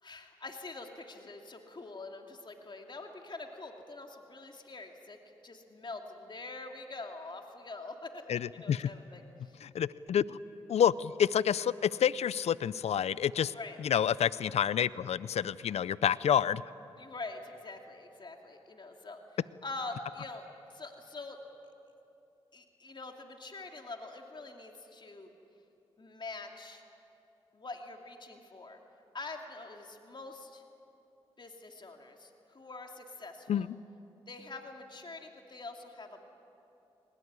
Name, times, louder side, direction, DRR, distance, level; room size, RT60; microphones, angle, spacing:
voice 1, 0.0-5.2 5.4-8.3 8.5-9.6 13.5-13.8 17.0-21.4 22.5-25.3 26.0-26.8 27.5-28.8 29.1-30.6 31.4-33.7 34.3-36.3, left 3 dB, 45° left, 3 dB, 2.9 m, -45 dB
voice 2, 8.3-8.9 9.6-10.4 10.7-13.5 13.8-16.6 33.5-33.7, left 9 dB, 70° left, 19 dB, 0.6 m, -28 dB
22.5 x 20.0 x 9.7 m, 2.8 s
supercardioid pair, 45°, 11 cm